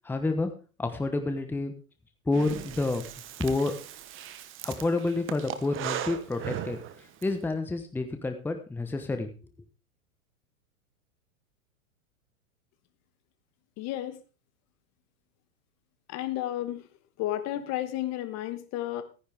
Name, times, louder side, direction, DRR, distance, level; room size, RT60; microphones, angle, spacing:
voice 1, 0.0-0.5 0.8-1.7 2.3-3.0 3.4-3.7 4.6-6.8 7.2-9.3, left 2 dB, 5° left, 7 dB, 1.0 m, -29 dB
Breathing, 2.3-7.3, right 11 dB, 30° right, 1.1 m, -38 dB
voice 2, 13.8-14.2 16.1-16.9 17.2-19.0, left 13 dB, 35° left, 12 dB, 1.2 m, -32 dB
13.5 x 10.0 x 3.5 m, 0.34 s
hypercardioid pair, 110°, 43 cm